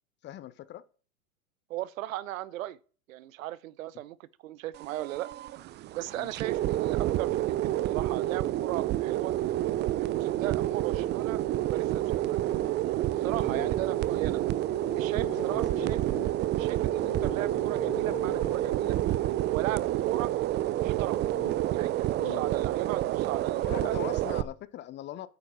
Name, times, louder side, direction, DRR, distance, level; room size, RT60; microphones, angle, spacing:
voice 1, 0.2-0.8 6.1-6.3 10.9-11.0 13.4-14.0 15.2-16.3 21.3-21.6 22.2-22.4 23.6-25.3, left 13 dB, 25° left, 0.6 m, -42 dB
voice 2, 1.7-2.8 3.1-5.3 5.9-9.3 10.0-12.4 13.1-14.4 14.9-16.0 16.6-19.0 19.5-20.3 20.8-21.2 21.7-24.0, right 14 dB, 65° right, 0.8 m, -37 dB
sound 1, 4.7-24.4, right 14 dB, 25° right, 0.5 m, -29 dB
sound 2, 9.5-20.0, left 10 dB, 60° left, 3.7 m, -47 dB
sound 3, 9.7-22.2, right 11 dB, 90° right, 0.6 m, -44 dB
9.1 x 7.5 x 8.7 m
hypercardioid pair, 105°, 43 cm